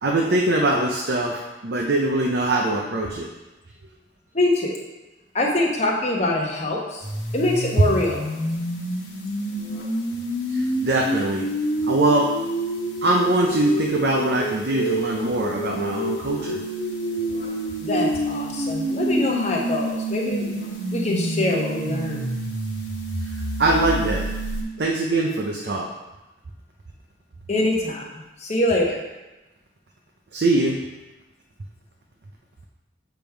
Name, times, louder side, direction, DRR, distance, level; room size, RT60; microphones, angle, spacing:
voice 1, 0.0-3.3 10.5-11.5 11.9-12.3 13.0-16.6 23.6-24.3 24.8-25.9 30.3-30.8, right 2 dB, 60° right, -1 dB, 0.6 m, -22 dB
voice 2, 4.3-4.8 5.3-7.0 7.3-8.2 17.8-20.5 20.9-22.2 27.5-28.1 28.4-29.0, left 1 dB, 35° left, -1 dB, 1.0 m, -24 dB
sound 1, 7.0-24.6, right 1 dB, 70° left, 1.3 m, -28 dB
7.1 x 3.4 x 4.5 m, 1.1 s
head